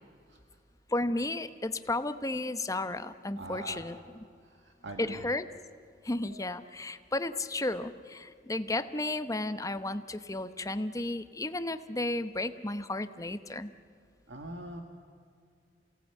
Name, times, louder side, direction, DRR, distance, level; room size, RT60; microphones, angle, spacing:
voice 1, 0.9-3.9 5.0-5.5 6.0-13.7, left 2 dB, 20° left, 11 dB, 0.9 m, -33 dB
voice 2, 3.4-3.8 4.4-5.3 6.3-6.5 14.3-14.8, right 2 dB, 90° right, 4 dB, 1.8 m, -43 dB
28.5 x 17.5 x 9.1 m, 2.3 s
head